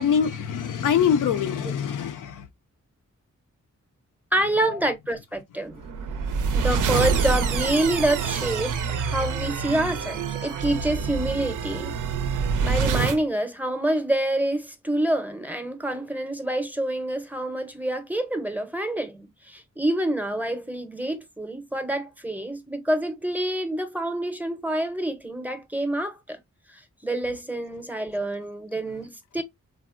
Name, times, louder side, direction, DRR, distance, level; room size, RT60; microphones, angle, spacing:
voice 1, 0.0-2.4, left 8 dB, 85° left, 0.5 m, -24 dB
voice 2, 4.3-5.8 6.5-11.9 12.6-26.4 26.7-29.4, right 1 dB, 5° right, 0.6 m, -27 dB
sound 1, 5.8-13.2, right 6 dB, 85° right, 0.5 m, -26 dB
3.4 x 2.0 x 2.4 m
cardioid pair, 75°, 30 cm